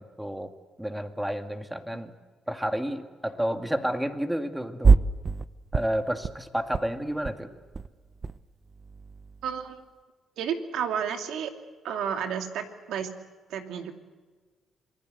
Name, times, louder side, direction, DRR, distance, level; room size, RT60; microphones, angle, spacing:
voice 1, 0.0-2.2 2.5-5.0 5.7-7.5, equal, 5° right, 6 dB, 2.3 m, -31 dB
sound 1, 4.8-5.5 5.7-6.4 6.6-6.8 7.1-7.3 7.6-8.4 8.7-9.6, right 4 dB, 35° right, 0.9 m, -24 dB
voice 2, 9.4-9.8 10.4-11.5 11.8-13.1 13.5-13.9, right 8 dB, 80° right, 5 dB, 2.7 m, -31 dB
27.0 x 19.5 x 8.1 m, 1.4 s
cardioid pair, 90°, 0 cm